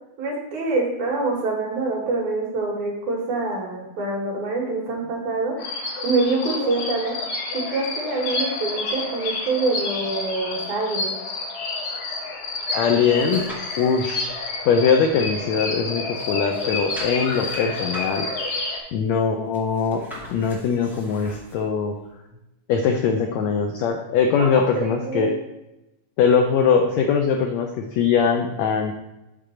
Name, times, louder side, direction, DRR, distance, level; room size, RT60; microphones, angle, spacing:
voice 1, 0.2-7.2 7.5-11.1 24.4-24.5 24.8-25.3, right 3 dB, 65° right, -2 dB, 3.0 m, -25 dB
sound 1, 5.6-18.8, left 3 dB, 60° left, 1.8 m, -29 dB
sound 2, 12.6-14.2 14.7-15.8 16.1-21.6 22.1-22.2, equal, ahead, 1.6 m, -41 dB
voice 2, 12.7-13.5 13.8-14.3 14.6-18.3 18.9-21.9 22.7-25.3 26.2-28.9, left 6 dB, 80° left, 4 dB, 1.6 m, -21 dB
8.2 x 3.7 x 5.7 m, 0.94 s
omnidirectional pair, 3.9 m